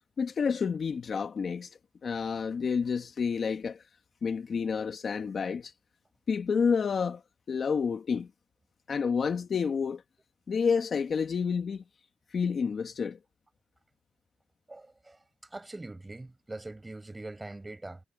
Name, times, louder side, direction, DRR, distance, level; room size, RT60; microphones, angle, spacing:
voice 1, 0.2-1.7 2.0-3.8 4.2-5.7 6.3-7.2 7.5-8.3 8.9-10.0 10.5-11.8 12.3-13.2, left 6 dB, 45° left, 1.7 m, -29 dB
voice 2, 14.7-18.0, right 2 dB, 15° right, 5.8 m, -43 dB
cardioid pair, 125°, 0 cm